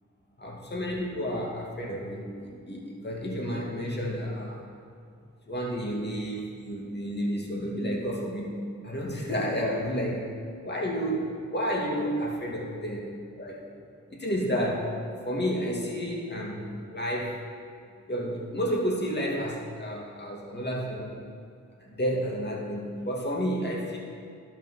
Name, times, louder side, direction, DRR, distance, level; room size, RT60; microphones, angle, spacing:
voice 1, 0.4-4.6 5.5-8.6 8.8-10.3 10.6-13.1 13.4-13.7 14.1-15.0 15.2-17.4 18.1-21.2 21.8-24.0, equal, 35° left, -2 dB, 2.5 m, -31 dB
11.5 x 5.7 x 5.7 m, 2.3 s
supercardioid pair, 45°, 31 cm